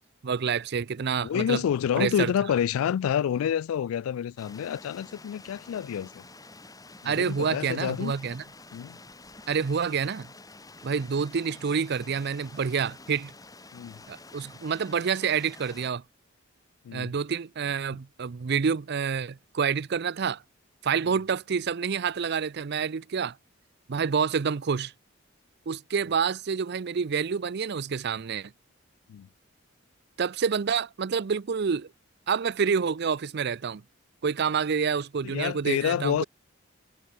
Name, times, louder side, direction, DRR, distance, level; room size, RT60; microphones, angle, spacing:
voice 1, 0.2-1.6 2.0-2.3 7.0-8.4 9.5-10.3 10.8-13.3 14.1-16.0 16.9-20.4 20.8-23.4 23.9-24.9 25.7-28.5 30.2-31.9 32.3-33.8 34.2-36.2, right 6 dB, 55° right, 0.5 m, -28 dB
voice 2, 1.2-6.2 7.0-8.1 8.7-9.0 13.7-14.0 16.8-17.1 29.1-29.3 35.2-36.2, left 9 dB, 90° left, 0.3 m, -28 dB
sound 1, 4.4-15.9, left 3 dB, 20° left, 4.5 m, -49 dB
head